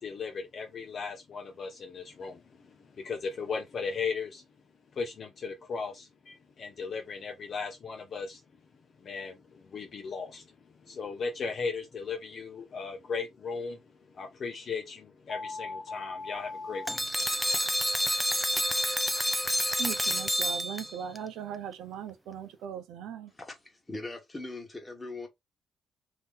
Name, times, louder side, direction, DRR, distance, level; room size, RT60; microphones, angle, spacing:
voice 1, 0.0-4.5 4.9-8.4 9.0-17.7, left 5 dB, 50° left, 0.7 m, -37 dB
sound 1, 16.9-21.2, equal, ahead, 0.4 m, -28 dB
voice 2, 19.8-23.3, right 8 dB, 85° right, 0.7 m, -39 dB
voice 3, 23.3-25.3, left 2 dB, 20° left, 1.3 m, -41 dB
2.9 x 2.8 x 3.6 m
cardioid pair, 90°, 0 cm